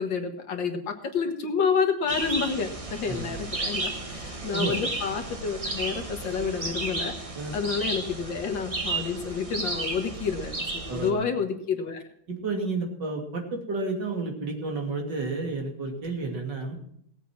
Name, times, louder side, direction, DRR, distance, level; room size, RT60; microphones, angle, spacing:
voice 1, 0.0-7.2 7.5-12.0, left 6 dB, 70° left, 5 dB, 2.3 m, -29 dB
sound 1, 2.1-11.1, right 2 dB, 20° right, 1.4 m, -33 dB
voice 2, 10.9-11.3 12.3-16.7, right 3 dB, 60° right, 2 dB, 3.2 m, -31 dB
18.0 x 8.2 x 6.0 m, 0.68 s
omnidirectional pair, 2.1 m